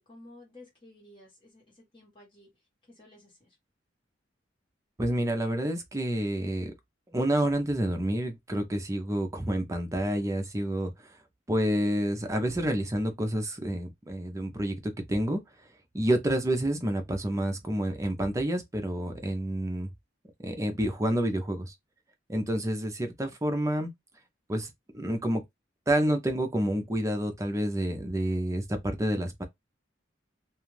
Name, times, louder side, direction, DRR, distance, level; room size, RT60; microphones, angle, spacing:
voice 1, 0.0-2.5 2.9-3.6, left 1 dB, 25° left, 1.3 m, -53 dB
voice 2, 5.0-6.7 7.1-11.1 11.5-15.4 15.9-19.9 20.4-21.7 22.3-23.9 24.5-25.4 25.9-29.4, right 1 dB, 15° right, 0.5 m, -29 dB
2.4 x 2.3 x 3.2 m
head